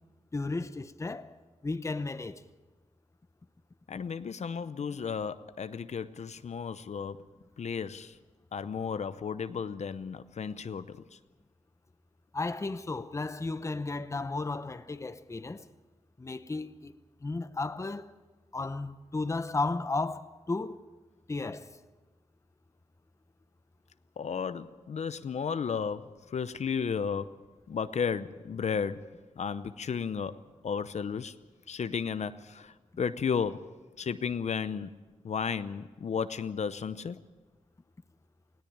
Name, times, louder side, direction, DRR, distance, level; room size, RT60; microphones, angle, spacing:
voice 1, 0.3-1.4 1.6-2.4 12.3-15.7 16.2-16.9 17.2-18.1 18.5-20.9 21.3-21.8, left 3 dB, 25° left, 0.8 m, -34 dB
voice 2, 3.9-7.2 7.6-8.2 8.5-11.0 24.2-27.4 27.7-29.1 29.4-30.4 30.6-31.3 31.7-33.6 34.0-34.9 35.2-37.2, left 6 dB, 65° left, 0.7 m, -33 dB
19.0 x 17.5 x 8.7 m
wide cardioid pair, 95°, 13 cm